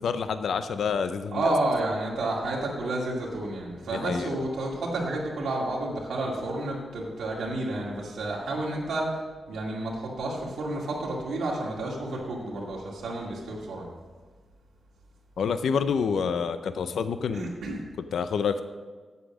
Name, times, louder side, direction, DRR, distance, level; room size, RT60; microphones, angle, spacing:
voice 1, 0.0-1.5 3.9-4.3 15.4-17.5 18.1-18.6, left 6 dB, 80° left, 11 dB, 0.5 m, -28 dB
voice 2, 1.3-9.1 9.5-13.9 17.3-17.8, right 2 dB, 90° right, -4 dB, 2.3 m, -30 dB
8.3 x 8.0 x 6.3 m, 1.4 s
wide cardioid pair, 140°, 0 cm